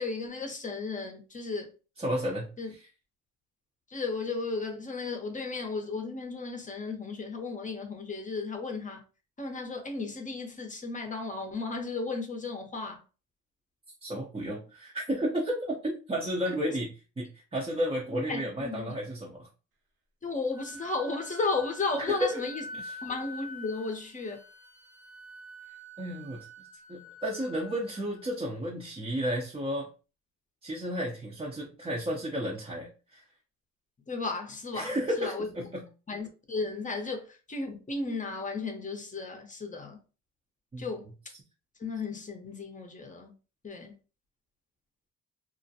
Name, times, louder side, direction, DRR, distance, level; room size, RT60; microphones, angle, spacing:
voice 1, 0.0-1.7 2.6-2.7 3.9-9.0 9.4-13.0 16.5-16.6 18.1-18.8 20.2-22.6 23.0-24.4 34.1-35.5 36.1-40.0 40.8-41.1 41.8-43.3 43.6-43.9, left 3 dB, 25° left, 0.7 m, -34 dB
voice 2, 2.0-2.9 14.0-19.5 22.1-22.4 22.8-23.0 26.0-26.5 26.9-29.9 30.6-33.2 34.7-35.9 40.7-40.9, equal, 20° right, 0.6 m, -32 dB
Wind instrument woodwind instrument, 20.5-28.3, left 1 dB, 75° right, 0.7 m, -46 dB
2.4 x 2.1 x 2.7 m
cardioid pair, 90°, 30 cm